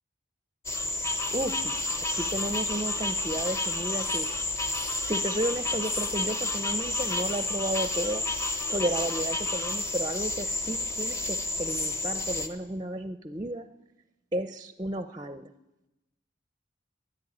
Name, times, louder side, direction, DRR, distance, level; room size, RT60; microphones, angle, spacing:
sound 1, 0.7-12.5, left 2 dB, 15° left, 0.9 m, -30 dB
voice 1, 1.3-1.7 2.1-4.3 5.0-8.2 8.7-13.7 14.3-15.5, right 1 dB, 20° right, 10 dB, 0.5 m, -33 dB
13.5 x 10.5 x 9.6 m, 1.0 s
head